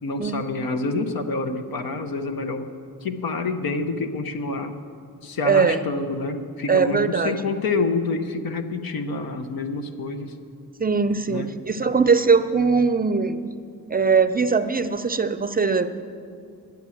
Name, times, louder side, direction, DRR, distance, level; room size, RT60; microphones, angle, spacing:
voice 1, 0.0-2.7 3.0-4.8 5.2-10.3 11.3-11.5, left 3 dB, 70° left, 7 dB, 1.0 m, -27 dB
voice 2, 5.4-5.8 6.7-7.3 10.8-13.4 13.9-16.0, right 5 dB, 25° right, 11 dB, 0.5 m, -21 dB
10.5 x 8.0 x 8.5 m, 2.4 s
cardioid pair, 65°, 36 cm